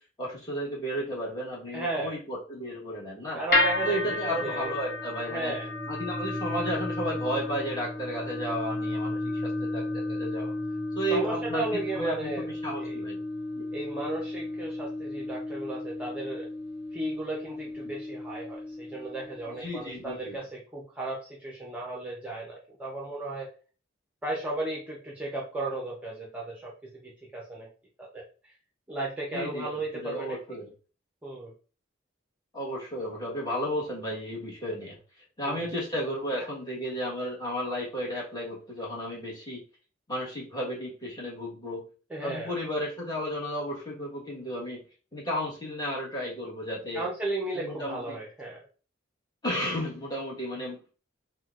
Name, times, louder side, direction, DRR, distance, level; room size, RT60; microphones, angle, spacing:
voice 1, 0.2-3.4 3.8-5.5 5.9-10.5 10.9-13.2 13.6-13.7 17.8-17.9 19.5-20.4 29.3-29.7 29.9-30.7 32.5-35.0 35.4-39.6 40.1-41.8 42.2-44.8 45.1-47.0 47.5-48.2 49.4-50.8, equal, 20° left, -4 dB, 1.2 m, -33 dB
voice 2, 1.7-2.2 3.3-4.8 5.3-5.7 11.1-12.5 12.8-13.0 13.7-16.5 16.9-23.5 24.2-27.7 28.0-28.5 28.9-30.4 31.2-31.5 35.4-35.7 42.1-42.5 46.9-48.6, right 2 dB, 10° right, -3 dB, 0.6 m, -35 dB
sound 1, 3.5-19.7, left 2 dB, 55° left, 0.7 m, -33 dB
4.3 x 2.1 x 2.3 m, 0.36 s
head